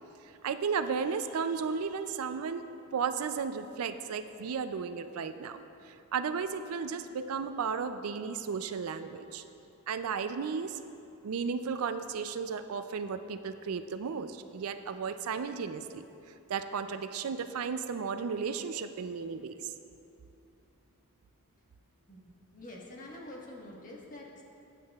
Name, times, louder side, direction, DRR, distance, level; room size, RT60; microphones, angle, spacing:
voice 1, 0.4-2.6 2.9-5.6 5.9-9.4 9.9-10.8 11.2-16.0 16.5-19.7, right 6 dB, 70° right, 10 dB, 0.4 m, -34 dB
voice 2, 22.1-24.4, left 1 dB, 35° left, -2 dB, 1.4 m, -47 dB
15.0 x 9.3 x 2.4 m, 2.7 s
head